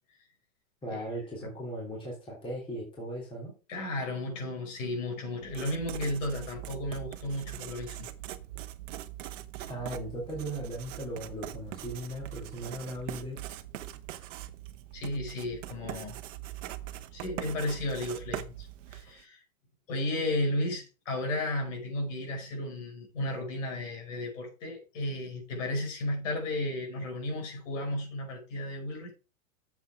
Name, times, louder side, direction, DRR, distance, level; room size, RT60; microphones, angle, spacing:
voice 1, 0.8-3.5 9.6-13.4, right 1 dB, 10° left, 3.2 m, -38 dB
voice 2, 3.7-8.1 14.9-16.2 17.1-19.4 19.9-29.1, left 1 dB, 60° left, 5.1 m, -34 dB
Writing, 5.4-19.2, right 13 dB, 60° right, 1.1 m, -42 dB
7.8 x 7.4 x 4.8 m
supercardioid pair, 170°, 42 cm